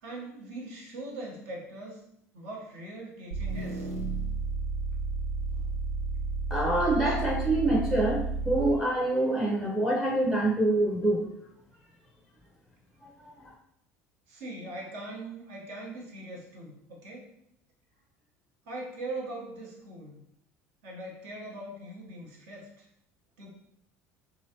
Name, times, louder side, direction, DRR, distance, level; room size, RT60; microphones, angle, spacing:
voice 1, 0.0-2.0 2.3-3.9 5.5-5.7 14.3-17.2 18.7-20.2 20.8-22.9 23.4-23.5, right 2 dB, 65° right, -2 dB, 0.9 m, -41 dB
sound 1, 3.3-8.9, right 4 dB, 80° right, 0.5 m, -32 dB
voice 2, 6.5-11.3 13.0-13.5, right 1 dB, 5° right, 0 dB, 0.6 m, -26 dB
3.0 x 2.5 x 2.8 m, 0.75 s
figure-of-eight pair, 65°, 8 cm